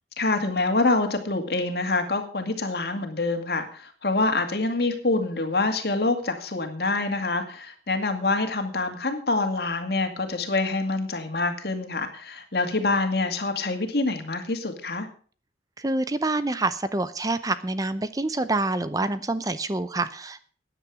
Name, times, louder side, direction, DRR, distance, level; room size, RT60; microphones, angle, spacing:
voice 1, 0.2-15.1, left 3 dB, 60° left, 6 dB, 2.3 m, -26 dB
voice 2, 15.8-20.5, right 2 dB, 20° right, 13 dB, 0.6 m, -27 dB
14.5 x 10.0 x 4.9 m, 0.43 s
head